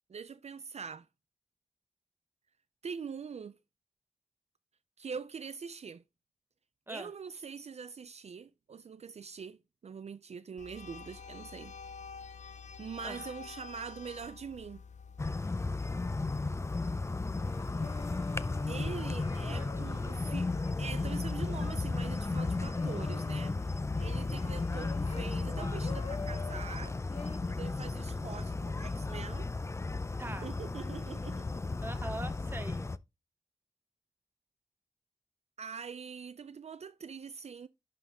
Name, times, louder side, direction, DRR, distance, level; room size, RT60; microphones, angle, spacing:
voice 1, 0.1-1.1 2.8-3.6 5.0-6.0 6.9-11.8 12.8-14.8 18.7-20.5 20.8-23.6 24.0-27.0 27.5-29.5 30.3-31.5 35.6-37.7, right 6 dB, 60° right, 0.4 m, -43 dB
sound 1, 10.6-16.0, left 5 dB, 75° left, 0.6 m, -48 dB
sound 2, 15.2-33.0, left 3 dB, 25° left, 0.4 m, -34 dB
sound 3, 17.4-26.7 27.1-27.4, left 4 dB, 60° left, 1.4 m, -48 dB
voice 2, 19.3-20.0 30.2-30.5 31.8-32.8, right 2 dB, 20° right, 1.0 m, -43 dB
11.5 x 3.9 x 3.5 m
wide cardioid pair, 85°, 12 cm